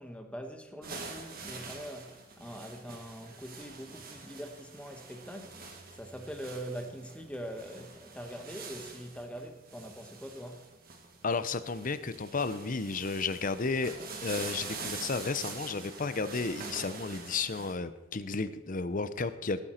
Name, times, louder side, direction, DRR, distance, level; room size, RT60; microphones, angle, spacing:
voice 1, 0.0-10.7, equal, 5° left, 1.1 m, -43 dB
sound 1, 0.8-17.7, right 4 dB, 50° right, 2.0 m, -45 dB
voice 2, 11.2-13.9 14.2-19.6, left 4 dB, 45° left, 0.7 m, -33 dB
18.5 x 9.0 x 4.4 m
head